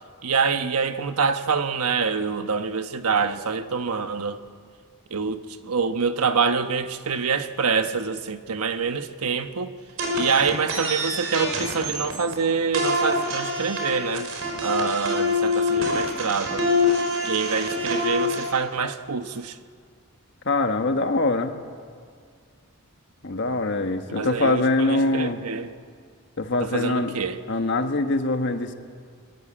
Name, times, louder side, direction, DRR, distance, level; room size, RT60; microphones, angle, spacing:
voice 1, 0.2-4.4 5.1-9.7 10.1-14.3 14.6-16.7 17.2-19.6 24.1-25.7 26.6-27.4, right 5 dB, 90° right, 8 dB, 1.2 m, -26 dB
sound 1, 10.0-12.3 12.7-18.4, left 2 dB, 60° right, 5.1 m, -25 dB
voice 2, 20.4-21.5 23.2-25.4 26.4-27.1 27.5-28.7, left 2 dB, 55° left, 6 dB, 1.5 m, -23 dB
23.0 x 22.5 x 8.9 m, 2.1 s
head